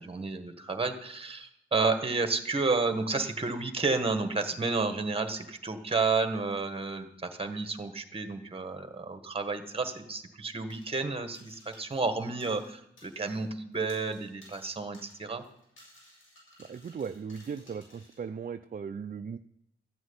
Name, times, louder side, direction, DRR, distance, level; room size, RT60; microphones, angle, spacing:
voice 1, 0.0-15.4, right 3 dB, 30° right, 8 dB, 1.5 m, -31 dB
sound 1, 10.7-11.1 11.3-13.5 13.7-18.2, left 1 dB, 85° left, 7.2 m, -57 dB
voice 2, 16.6-19.4, right 6 dB, 45° right, 8 dB, 0.5 m, -38 dB
14.0 x 6.2 x 9.6 m, 0.76 s
wide cardioid pair, 110°, 20 cm